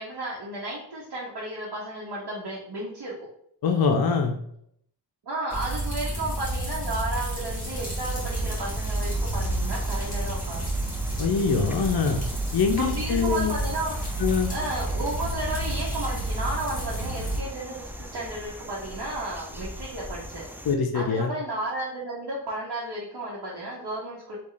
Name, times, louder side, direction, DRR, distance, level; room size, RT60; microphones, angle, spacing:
voice 1, 0.0-3.1 5.2-10.7 12.8-14.0 14.5-20.5 20.9-24.4, right 1 dB, 60° right, -7 dB, 1.0 m, -33 dB
voice 2, 3.6-4.4 11.2-12.2 12.5-13.5 14.2-14.5 20.7-21.3, left 5 dB, 55° left, 4 dB, 0.5 m, -23 dB
sound 1, 5.5-17.4, right 1 dB, 20° left, 1.5 m, -30 dB
sound 2, 7.2-20.8, equal, 5° right, 0.3 m, -41 dB
3.1 x 2.4 x 3.8 m, 0.68 s
cardioid pair, 60°, 44 cm